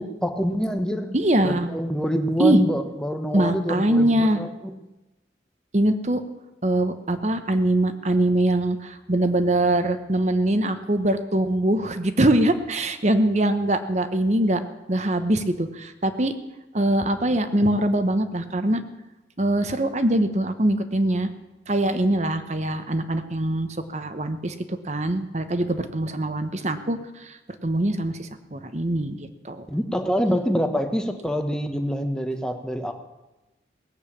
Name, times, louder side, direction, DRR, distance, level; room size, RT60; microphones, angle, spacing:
voice 1, 0.0-1.2 1.4-4.8 29.7-32.9, equal, 5° left, 6 dB, 1.1 m, -26 dB
voice 2, 1.1-1.7 2.4-2.6 3.3-4.4 5.7-6.2 6.6-14.6 14.9-16.3 16.7-18.8 19.4-21.3 21.7-29.7, right 1 dB, 40° right, 9 dB, 1.0 m, -23 dB
18.5 x 8.1 x 8.6 m, 1.0 s
head